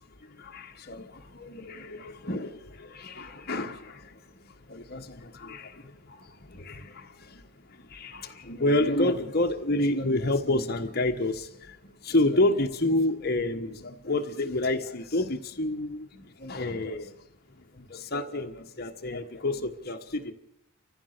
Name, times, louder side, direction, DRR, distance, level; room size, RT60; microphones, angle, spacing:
voice 1, 0.2-17.2 17.5-20.3, left 2 dB, 45° left, 1.4 m, -29 dB
29.0 x 14.5 x 6.8 m
head